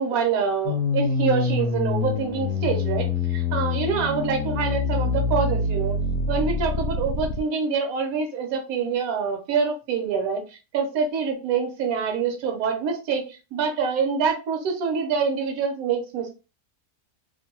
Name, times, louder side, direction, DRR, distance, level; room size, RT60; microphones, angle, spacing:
voice 1, 0.0-6.0 6.3-10.4 10.7-16.4, right 6 dB, 65° right, 3 dB, 1.2 m, -26 dB
sound 1, 0.6-7.4, left 4 dB, 65° left, 0.9 m, -25 dB
3.0 x 2.2 x 2.9 m, 0.32 s
omnidirectional pair, 1.8 m